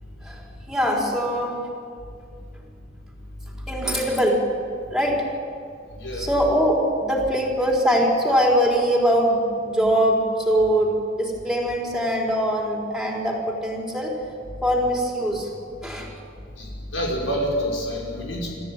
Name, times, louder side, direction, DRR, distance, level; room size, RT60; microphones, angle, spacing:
voice 1, 0.7-1.7 3.7-4.4 4.9-5.3 6.1-14.1 14.6-15.5 15.8-16.2, equal, ahead, -2 dB, 4.3 m, -22 dB
voice 2, 16.9-18.5, equal, 85° left, -2 dB, 5.6 m, -27 dB
26.5 x 14.5 x 9.1 m, 2.2 s
head